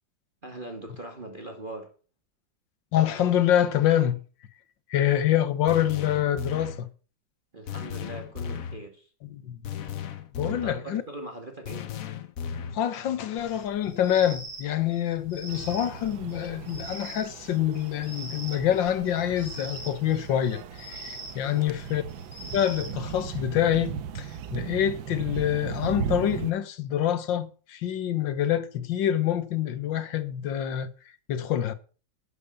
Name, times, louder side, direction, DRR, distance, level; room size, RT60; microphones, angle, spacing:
voice 1, 0.4-1.9 7.5-9.1 10.4-11.9 21.4-21.7, right 1 dB, 25° right, 1.8 m, -41 dB
voice 2, 2.9-4.2 4.9-6.9 9.3-9.6 10.4-11.0 12.7-22.0 22.5-30.9 31.3-31.7, left 11 dB, 75° left, 1.7 m, -26 dB
sound 1, 5.7-6.9 7.7-8.8 9.6-10.9 11.7-12.9, left 7 dB, 55° left, 1.1 m, -35 dB
sound 2, 13.4-23.4, right 1 dB, 35° left, 4.5 m, -43 dB
sound 3, 15.5-26.5, right 7 dB, 85° right, 1.6 m, -37 dB
12.0 x 6.8 x 7.0 m
omnidirectional pair, 2.1 m